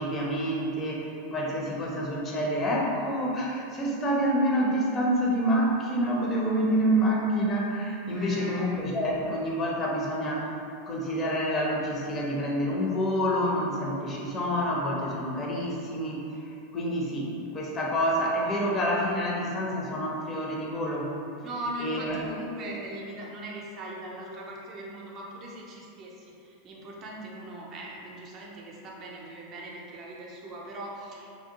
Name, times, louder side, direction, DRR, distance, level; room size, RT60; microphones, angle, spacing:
voice 1, 0.0-10.5 10.9-21.1 21.8-22.2, equal, 30° left, -2 dB, 0.6 m, -28 dB
voice 2, 8.1-8.8 21.4-31.4, right 1 dB, 40° right, -3 dB, 0.5 m, -40 dB
2.6 x 2.0 x 2.9 m, 2.6 s
hypercardioid pair, 95°, 0 cm